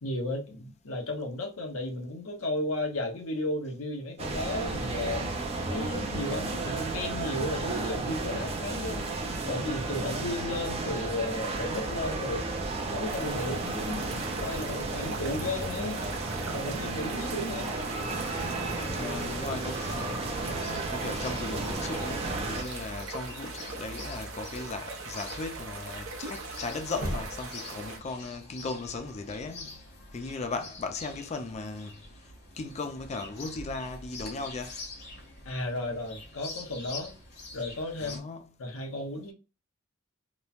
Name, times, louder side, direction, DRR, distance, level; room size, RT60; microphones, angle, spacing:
voice 1, 0.0-5.3 5.7-9.0 9.4-12.5 12.9-16.0 16.5-17.7 35.4-37.1 37.5-38.2 38.6-39.3, left 1 dB, 70° left, 0.8 m, -34 dB
sound 1, 4.2-22.6, right 3 dB, 30° right, 0.5 m, -33 dB
sound 2, 13.0-28.0, right 3 dB, 75° right, 0.7 m, -41 dB
voice 2, 18.7-29.8 30.1-32.0 32.5-34.8 38.0-38.5, left 3 dB, 30° left, 0.4 m, -37 dB
Chirp tweet, 19.3-38.2, left 1 dB, 50° left, 1.0 m, -44 dB
3.0 x 2.1 x 2.4 m
head